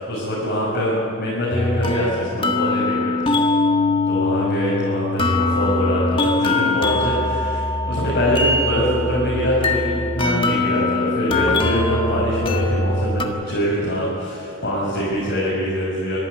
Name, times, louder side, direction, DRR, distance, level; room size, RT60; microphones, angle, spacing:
voice 1, 0.0-3.3 4.0-16.2, equal, 50° left, -7 dB, 6.7 m, -23 dB
sound 1, 1.5-13.3, left 2 dB, 25° left, 1.6 m, -22 dB
24.0 x 15.0 x 9.8 m, 2.4 s
head